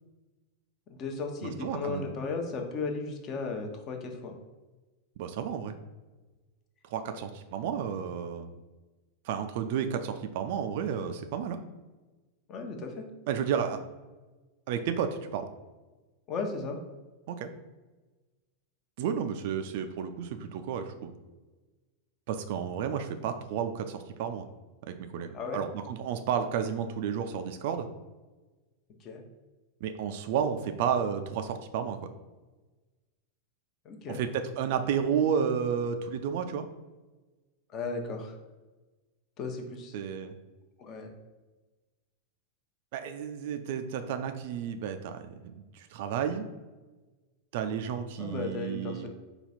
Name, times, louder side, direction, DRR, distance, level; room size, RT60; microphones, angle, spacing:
voice 1, 0.9-4.3 7.0-7.2 12.5-13.1 16.3-16.8 22.9-23.1 25.3-25.6 29.0-29.2 33.8-34.2 37.7-38.3 39.4-40.0 40.8-41.1 48.2-49.1, left 4 dB, 35° left, 3 dB, 0.8 m, -35 dB
voice 2, 1.4-2.1 5.2-5.8 6.9-8.5 9.3-11.6 13.3-13.8 14.7-15.5 17.3-17.5 19.0-21.1 22.3-24.5 24.8-27.9 29.8-32.0 34.1-36.7 39.9-40.3 42.9-46.5 47.5-49.1, right 7 dB, 50° right, 8 dB, 0.4 m, -32 dB
4.9 x 2.4 x 4.2 m, 1.2 s
figure-of-eight pair, 90°, 0 cm